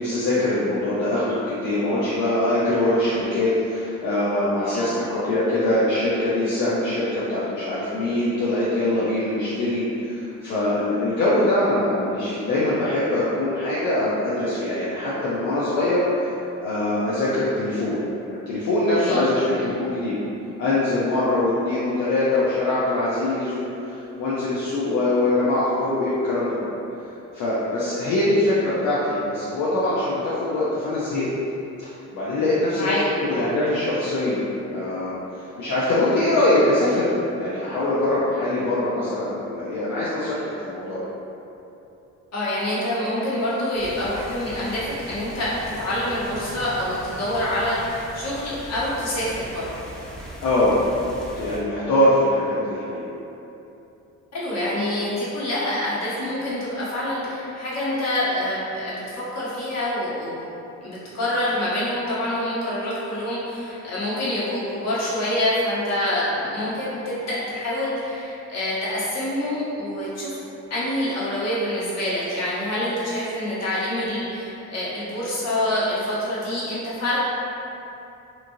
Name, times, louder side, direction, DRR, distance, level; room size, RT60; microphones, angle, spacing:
voice 1, 0.0-18.0 18.3-20.2 20.6-26.8 27.3-31.3 31.8-32.9 33.3-34.4 34.7-37.1 37.4-41.0 50.4-50.8 51.4-53.1, left 1 dB, 75° left, -9 dB, 0.6 m, -23 dB
voice 2, 4.6-4.9 18.9-19.2 19.6-19.7 32.7-33.5 42.3-49.6 54.3-60.4 60.8-70.3 70.7-77.2, left 1 dB, 60° left, -9 dB, 1.1 m, -26 dB
sound 1, 43.7-51.6, equal, ahead, 0.5 m, -39 dB
2.9 x 2.5 x 2.6 m, 2.9 s
cardioid pair, 90°, 30 cm